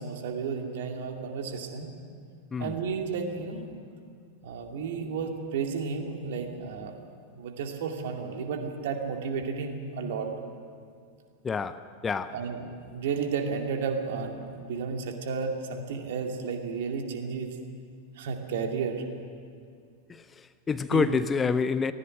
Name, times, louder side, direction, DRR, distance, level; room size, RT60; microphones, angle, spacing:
voice 1, 0.0-1.9 2.6-3.7 4.4-6.9 7.3-10.3 12.3-17.6 18.2-19.0 20.9-21.1, right 5 dB, 55° right, 2.4 m, -32 dB
voice 2, 11.4-12.4 20.1-21.9, left 5 dB, 20° left, 0.6 m, -28 dB
18.0 x 17.0 x 9.8 m
figure-of-eight pair, 90°, 0 cm